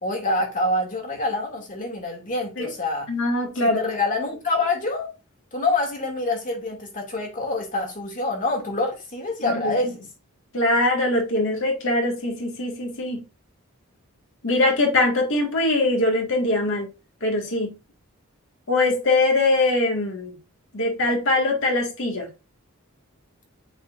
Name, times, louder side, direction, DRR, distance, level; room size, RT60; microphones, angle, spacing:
voice 1, 0.0-3.1 3.6-5.1 5.5-10.0, left 2 dB, 40° left, 2.2 m, -26 dB
voice 2, 3.1-3.8 9.4-9.8 10.5-13.2 14.4-16.9 17.2-17.7 18.7-20.4 20.7-22.3, left 2 dB, 60° left, 1.9 m, -22 dB
8.5 x 4.2 x 2.6 m
head